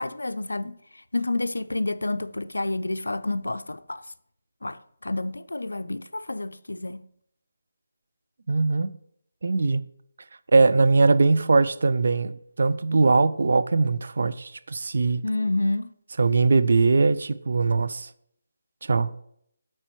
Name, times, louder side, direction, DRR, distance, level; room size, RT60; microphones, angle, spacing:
voice 1, 0.0-4.1 4.6-7.0 15.2-15.9, left 2 dB, 90° left, 0.4 m, -29 dB
voice 2, 8.5-8.9 9.4-9.8 10.5-12.3 12.6-15.2 16.2-18.1 18.8-19.1, right 3 dB, 65° right, 0.4 m, -21 dB
12.5 x 4.4 x 3.0 m
figure-of-eight pair, 155°, 0 cm